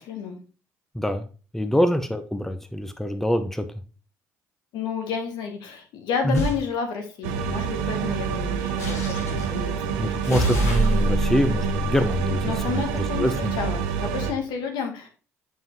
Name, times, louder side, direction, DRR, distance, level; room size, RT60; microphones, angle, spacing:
voice 1, 0.1-0.4 1.7-1.8 4.7-10.1 10.5-10.7 12.4-15.1, left 6 dB, 65° left, 4 dB, 1.5 m, -31 dB
voice 2, 1.5-3.7 6.2-6.4 10.0-12.4 12.7-12.8 13.2-13.5, equal, 5° left, 8 dB, 0.8 m, -24 dB
sound 1, 6.3-6.6 8.8-9.5 10.2-12.9, equal, 85° left, 1.7 m, -26 dB
sound 2, 7.2-14.3, right 7 dB, 75° right, 0.9 m, -27 dB
7.4 x 5.4 x 3.1 m, 0.35 s
hypercardioid pair, 55°, 8 cm